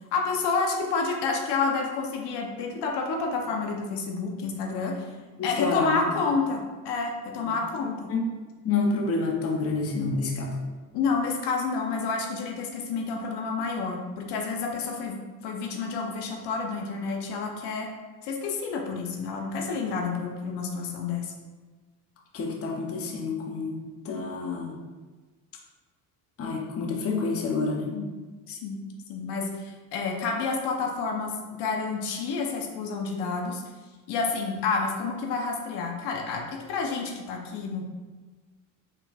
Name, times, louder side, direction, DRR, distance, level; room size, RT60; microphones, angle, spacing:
voice 1, 0.1-5.1 5.4-8.1 10.9-15.2 15.4-17.9 18.2-21.3 27.9-28.1 28.5-28.8 29.1-33.6 34.1-37.8, left 4 dB, 65° left, 1 dB, 0.8 m, -29 dB
voice 2, 5.4-6.1 7.4-7.5 8.1-8.3 8.6-10.6 22.3-24.8 26.4-28.0, left 3 dB, 35° left, 0 dB, 0.7 m, -28 dB
4.2 x 4.0 x 2.3 m, 1.3 s
supercardioid pair, 80°, 43 cm